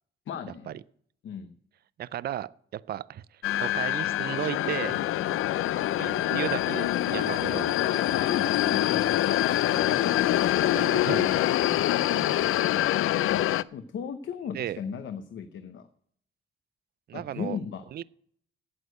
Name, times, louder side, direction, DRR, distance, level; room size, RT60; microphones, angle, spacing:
voice 1, 0.3-0.7 1.2-1.6 7.8-9.4 13.7-15.9 17.1-17.8, left 7 dB, 65° left, 0.8 m, -36 dB
voice 2, 2.0-5.1 5.9-7.7 9.8-10.0 10.5-12.3 14.5-14.8 17.1-17.6 17.9-18.0, right 12 dB, 50° right, 0.4 m, -35 dB
sound 1, 3.4-13.6, left 13 dB, 80° left, 0.4 m, -25 dB
9.5 x 8.2 x 7.9 m
wide cardioid pair, 160°, 21 cm